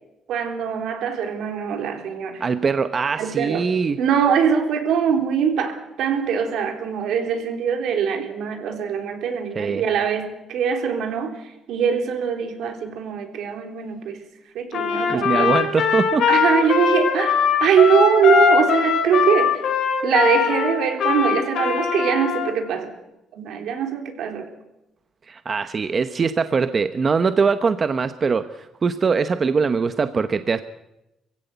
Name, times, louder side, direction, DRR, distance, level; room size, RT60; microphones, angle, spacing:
voice 1, 0.3-2.4 3.2-3.6 4.0-11.4 11.7-14.2 14.5-15.5 16.3-19.6 20.0-22.9 23.3-24.5, right 7 dB, 80° right, 5 dB, 3.6 m, -22 dB
voice 2, 2.4-4.0 9.5-9.8 15.1-16.3 25.3-30.6, right 5 dB, 40° right, 10 dB, 1.0 m, -22 dB
Trumpet, 14.7-22.5, left 7 dB, 70° left, 4.4 m, -21 dB
22.5 x 16.0 x 8.1 m, 0.93 s
cardioid pair, 90°, 0 cm